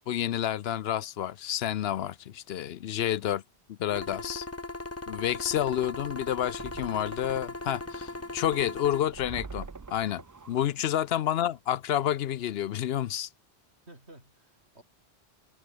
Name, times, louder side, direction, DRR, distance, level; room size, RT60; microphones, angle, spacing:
voice 1, 0.1-3.4 3.7-4.5 5.1-10.2 10.5-13.3, left 11 dB, 70° left, 0.8 m, -29 dB
sound 1, 3.9-9.0, left 2 dB, 15° left, 0.7 m, -38 dB
sound 2, 6.6-11.6, right 4 dB, 25° right, 0.4 m, -46 dB
voice 2, 13.9-14.8, right 1 dB, 80° right, 7.1 m, -54 dB
omnidirectional pair, 1.1 m